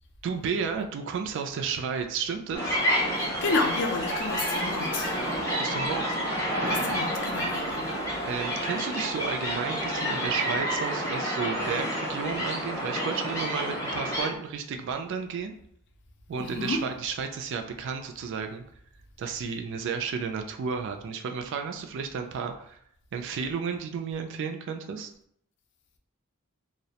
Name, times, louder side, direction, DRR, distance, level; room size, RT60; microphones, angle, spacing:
voice 1, 0.2-2.8 5.6-6.2 8.3-15.5 16.3-18.6 19.2-22.8 23.1-25.1, right 6 dB, 60° right, 6 dB, 0.3 m, -32 dB
sound 1, 2.5-14.3, equal, 15° left, 0.6 m, -29 dB
voice 2, 3.1-5.3 6.0-6.1 6.7-8.0 8.2-8.4 16.4-16.8, left 3 dB, 55° left, 4 dB, 0.4 m, -31 dB
2.3 x 2.0 x 2.7 m, 0.69 s
head